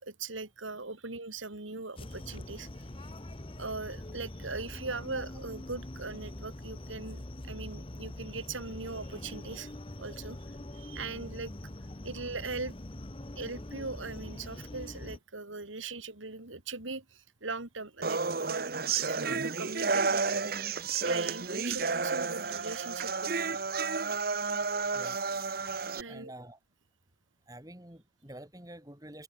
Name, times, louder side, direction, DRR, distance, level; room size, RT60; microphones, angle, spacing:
voice 1, 0.0-3.1 3.6-9.7 10.0-10.4 10.7-11.5 12.0-12.7 13.4-18.7 18.9-20.2 20.6-23.6 25.9-26.3, right 3 dB, 85° right, 2.9 m, -40 dB
sound 1, 2.0-15.2, left 1 dB, 30° left, 1.1 m, -43 dB
sound 2, 18.0-26.0, right 4 dB, 50° right, 1.2 m, -31 dB
voice 2, 24.9-25.2 25.6-26.6 27.5-29.2, right 1 dB, 20° right, 3.3 m, -48 dB
head